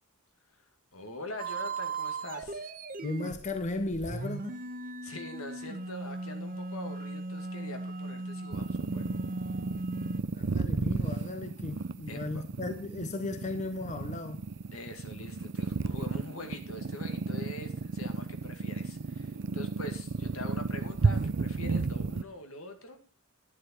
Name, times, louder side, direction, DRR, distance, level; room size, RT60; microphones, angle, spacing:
voice 1, 0.9-2.7 5.0-9.2 12.1-12.4 14.7-23.0, left 2 dB, 80° left, 2.1 m, -44 dB
sound 1, 1.4-10.2, right 3 dB, 40° right, 1.0 m, -38 dB
voice 2, 3.0-4.6 10.3-14.4, left 2 dB, 35° left, 0.8 m, -36 dB
sound 2, 8.5-22.2, right 4 dB, 55° right, 0.5 m, -33 dB
11.0 x 10.0 x 4.4 m
head